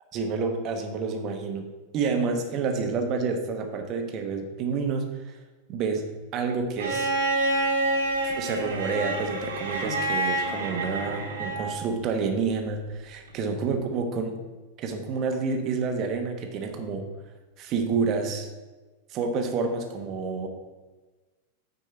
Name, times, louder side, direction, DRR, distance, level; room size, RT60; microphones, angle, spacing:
voice 1, 0.1-1.7 1.9-5.2 5.7-6.0 6.3-7.1 8.2-14.4 14.8-17.1 17.6-18.5 19.1-20.5, right 4 dB, 35° right, 4 dB, 1.3 m, -29 dB
Bowed string instrument, 6.8-11.8 13.3-13.4, right 2 dB, 65° right, 1.9 m, -27 dB
9.4 x 5.3 x 4.5 m, 1.3 s
figure-of-eight pair, 90°, 0 cm